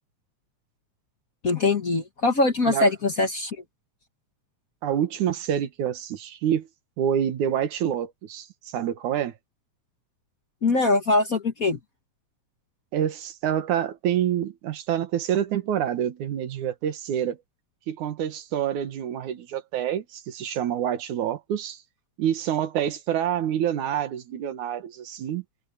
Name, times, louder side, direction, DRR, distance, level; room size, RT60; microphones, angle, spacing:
voice 1, 1.4-3.6 10.6-11.8, left 3 dB, 40° left, 1.5 m, -22 dB
voice 2, 4.8-6.7 7.0-9.3 12.9-17.4 17.9-21.8 22.2-25.4, right 10 dB, 90° right, 2.9 m, -27 dB
omnidirectional pair, 3.3 m